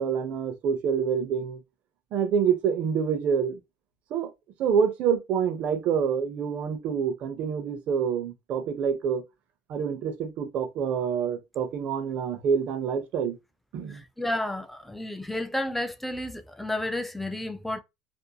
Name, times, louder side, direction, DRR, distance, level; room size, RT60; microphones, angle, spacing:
voice 1, 0.0-1.6 2.1-3.6 4.1-4.3 4.6-9.2 9.7-13.4 13.7-14.0, right 7 dB, 55° right, 0.6 m, -27 dB
voice 2, 13.9-17.8, left 1 dB, 5° left, 0.4 m, -31 dB
2.6 x 2.1 x 2.8 m
cardioid pair, 130°, 3 cm